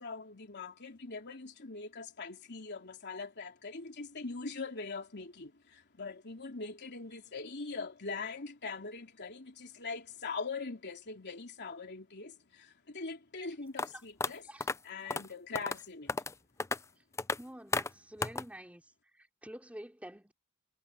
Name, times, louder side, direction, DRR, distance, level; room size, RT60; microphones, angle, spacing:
voice 1, 0.0-14.5 14.8-16.2, left 4 dB, 55° left, 3.4 m, -42 dB
sound 1, 13.8-13.9 14.2-14.3 14.6-14.8 15.1-15.3 15.6-15.8 16.1-16.3 16.6-16.8 17.2-17.4 17.7-17.9 18.2-18.4, left 3 dB, 15° left, 0.4 m, -32 dB
voice 2, 17.4-18.8 19.1-20.3, right 1 dB, 5° right, 4.8 m, -48 dB
head